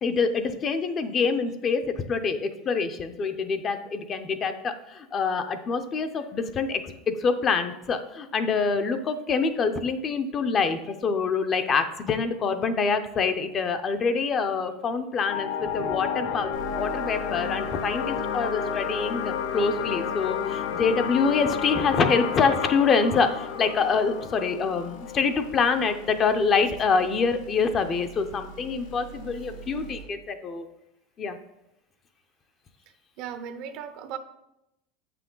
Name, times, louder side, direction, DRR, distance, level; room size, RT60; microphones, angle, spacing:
voice 1, 0.0-30.7 31.2-31.4, left 5 dB, 30° left, 8 dB, 0.6 m, -26 dB
sound 1, 15.2-26.3, left 8 dB, 70° left, 0.6 m, -31 dB
sound 2, 16.5-30.0, right 3 dB, 90° left, 2.6 m, -45 dB
voice 2, 33.2-34.2, right 8 dB, 55° right, 10 dB, 0.7 m, -36 dB
7.7 x 5.8 x 3.8 m, 0.87 s
supercardioid pair, 135°, 0 cm